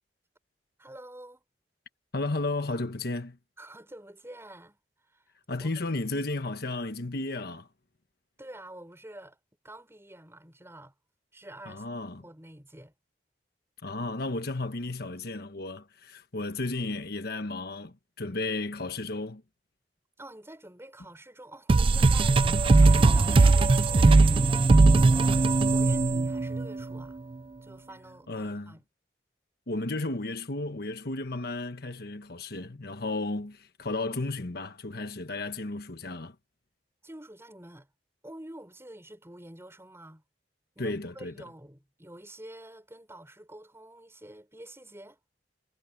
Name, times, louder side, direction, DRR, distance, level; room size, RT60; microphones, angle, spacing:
voice 1, 0.8-1.4 3.6-4.8 5.1-5.2 5.6-5.7 8.4-9.4 9.6-10.9 11.3-11.9 12.2-12.9 20.2-27.2 27.6-28.8 37.0-37.9 38.2-40.2 40.8-45.2, right 1 dB, 15° right, 6.1 m, -48 dB
voice 2, 2.1-3.4 5.5-7.7 11.7-12.2 13.8-19.4 28.3-28.8 29.7-36.3 40.8-41.3, left 2 dB, 65° left, 1.3 m, -33 dB
sound 1, 21.7-27.0, right 3 dB, 30° right, 0.3 m, -20 dB
head